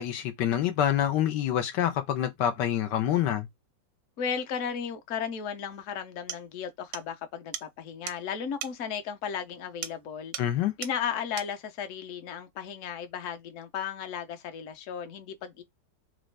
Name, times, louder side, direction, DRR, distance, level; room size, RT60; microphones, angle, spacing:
voice 1, 0.0-3.5 10.4-10.7, left 10 dB, 85° left, 1.3 m, -26 dB
voice 2, 4.2-10.3 10.8-15.6, left 7 dB, 55° left, 1.0 m, -35 dB
sound 1, 5.7-5.8 6.3-6.5 6.9-7.1 7.5-7.7 8.1-8.2 8.6-8.8 9.8-10.0 10.3-10.6 10.8-11.0 11.4-11.5, right 9 dB, 70° right, 0.9 m, -38 dB
3.9 x 2.5 x 3.2 m
omnidirectional pair, 1.9 m